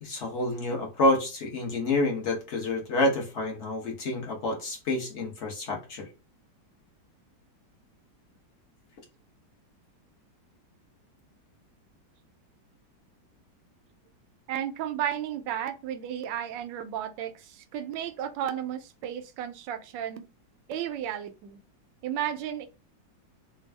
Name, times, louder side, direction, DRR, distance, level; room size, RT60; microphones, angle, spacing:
voice 1, 0.0-6.1, left 1 dB, 45° left, 1.0 m, -28 dB
voice 2, 14.5-20.2 20.7-21.6 22.0-22.7, right 10 dB, 75° right, 1.2 m, -33 dB
3.5 x 2.3 x 3.2 m
omnidirectional pair, 2.0 m